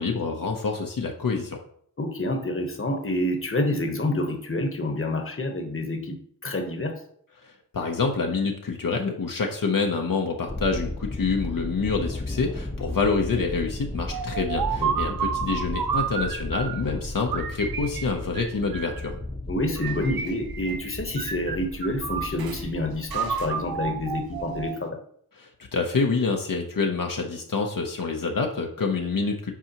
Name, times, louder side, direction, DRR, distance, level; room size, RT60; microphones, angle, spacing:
voice 1, 0.0-1.6 7.4-19.1 25.4-29.5, left 4 dB, 70° left, 2 dB, 0.9 m, -27 dB
voice 2, 2.0-6.2 6.4-7.0 14.8-15.2 19.5-25.0, left 1 dB, 40° left, 4 dB, 1.1 m, -28 dB
Thunder, 10.5-24.7, left 2 dB, 15° left, 0.8 m, -35 dB
sound 1, 14.1-16.9 17.3-19.1 19.8-20.9 21.2-22.6 23.1-24.9, right 7 dB, 90° right, 0.6 m, -31 dB
8.3 x 4.7 x 2.9 m, 0.63 s
wide cardioid pair, 90°, 35 cm